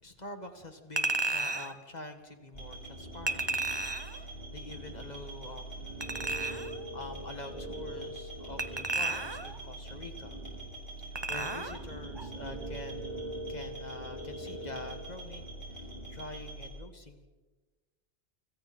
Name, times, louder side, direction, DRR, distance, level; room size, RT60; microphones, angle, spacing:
voice 1, 0.0-3.7 4.0-10.4 11.0-13.0 13.5-17.3, left 2 dB, 40° left, 6 dB, 2.2 m, -46 dB
Chink clink, 1.0-1.7 3.3-4.2 6.0-6.8 8.6-9.6 11.1-11.8 12.2-12.3, right 3 dB, 25° right, 1.1 m, -33 dB
sound 1, 2.5-16.7, right 1 dB, 65° left, 6.8 m, -42 dB
28.5 x 25.5 x 4.5 m, 1.3 s
omnidirectional pair, 1.1 m